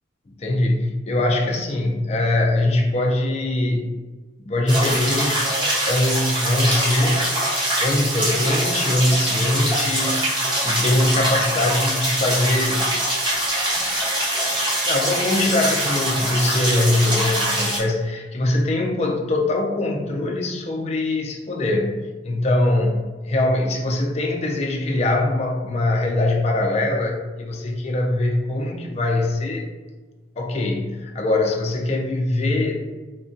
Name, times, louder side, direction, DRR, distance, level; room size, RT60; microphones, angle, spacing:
voice 1, 0.4-3.9 4.4-5.5 5.9-7.3 7.8-10.2 10.6-12.9 13.2-13.3 14.9-22.0 22.2-29.7 30.4-32.8, left 1 dB, 35° left, 1 dB, 0.4 m, -22 dB
sound 1, 4.7-17.8, right 1 dB, 25° right, 0.7 m, -23 dB
3.6 x 2.2 x 2.6 m, 1.3 s
head